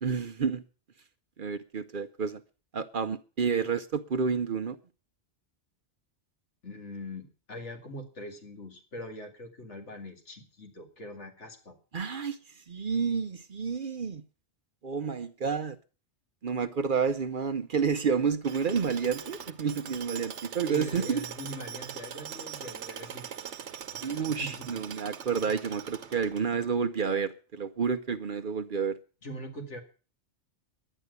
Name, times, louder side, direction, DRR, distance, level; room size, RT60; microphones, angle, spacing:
voice 1, 0.0-0.6 1.4-2.4 2.7-4.8 11.9-14.2 14.8-15.8 16.4-21.2 24.0-29.0, right 6 dB, 50° right, 0.9 m, -30 dB
voice 2, 6.6-11.8 20.7-23.3 23.9-24.8 25.3-25.5 26.2-26.4 29.2-29.8, equal, 80° left, 2.7 m, -42 dB
Tools, 18.4-26.7, right 8 dB, 75° right, 1.2 m, -42 dB
11.0 x 10.0 x 8.1 m
omnidirectional pair, 1.2 m